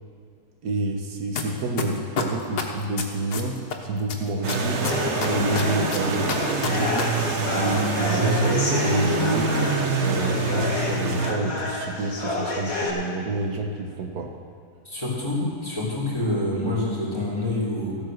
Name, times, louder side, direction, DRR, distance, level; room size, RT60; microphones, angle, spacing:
voice 1, 0.6-6.4 6.7-9.6 10.0-14.3, right 2 dB, 75° right, 3 dB, 1.6 m, -29 dB
sound 1, 1.4-1.5 1.8-3.7 4.1-7.0 7.3-7.4, left 6 dB, 80° left, 1.8 m, -27 dB
sound 2, 4.4-11.3, right 3 dB, 50° right, 1.2 m, -25 dB
sound 3, 4.9-12.9, left 3 dB, 60° left, 2.4 m, -29 dB
voice 2, 14.8-18.0, left 1 dB, 15° left, -6 dB, 3.6 m, -27 dB
15.0 x 8.8 x 6.4 m, 2.2 s
omnidirectional pair, 1.7 m